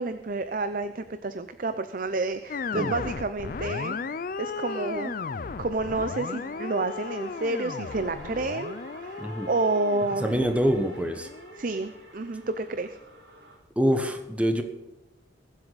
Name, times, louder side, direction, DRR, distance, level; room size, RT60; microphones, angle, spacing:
voice 1, 0.0-4.0 4.4-5.1 5.6-8.8 9.0-10.4 11.6-13.0, right 2 dB, 45° right, 10 dB, 0.6 m, -29 dB
sound 1, 2.3-13.6, right 1 dB, 80° right, 4.6 m, -49 dB
sound 2, 2.5-11.8, left 4 dB, 45° left, 0.4 m, -36 dB
voice 2, 9.2-9.5 10.2-11.3 13.8-14.6, equal, 5° right, 5 dB, 1.1 m, -25 dB
21.5 x 7.9 x 4.1 m, 1.1 s
head